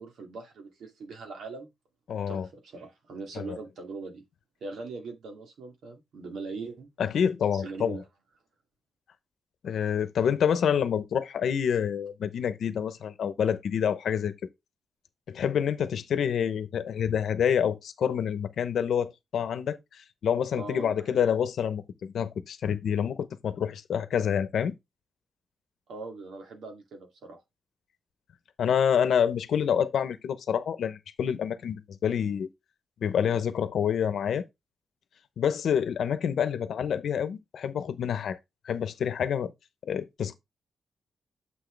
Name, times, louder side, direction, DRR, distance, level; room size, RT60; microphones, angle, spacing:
voice 1, 0.0-1.7 2.3-4.2 4.6-6.9 7.5-8.0 20.6-21.1 25.9-27.4, right 3 dB, 85° right, 2.3 m, -41 dB
voice 2, 2.1-2.5 3.3-3.6 7.0-8.0 9.6-14.3 15.3-24.7 28.6-32.5 33.0-34.4 35.4-38.4 38.6-39.5 39.8-40.3, left 8 dB, 70° left, 0.9 m, -27 dB
7.6 x 6.2 x 3.3 m
wide cardioid pair, 165°, 0 cm